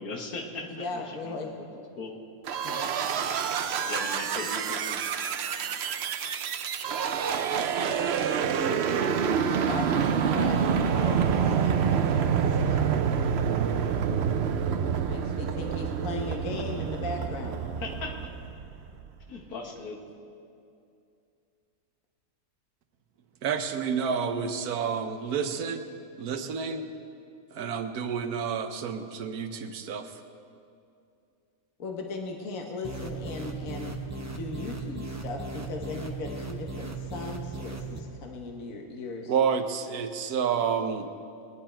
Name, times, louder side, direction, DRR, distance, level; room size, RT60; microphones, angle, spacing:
voice 1, 0.0-1.7 2.0-2.2 3.9-5.0 17.8-18.1 19.3-20.1, left 3 dB, 85° left, 2 dB, 1.9 m, -38 dB
voice 2, 0.7-1.5 2.6-3.2 9.4-12.9 14.8-17.6 31.8-39.3, left 3 dB, 65° left, 2 dB, 1.5 m, -37 dB
sound 1, 2.4-19.1, right 7 dB, 60° right, 0.7 m, -27 dB
voice 3, 23.4-25.9 26.2-26.9 27.5-30.2 39.3-41.1, right 6 dB, 85° right, 8 dB, 1.3 m, -29 dB
sound 2, 32.8-38.0, right 3 dB, 15° right, 0.7 m, -37 dB
20.0 x 10.5 x 4.4 m, 2.5 s
omnidirectional pair, 1.6 m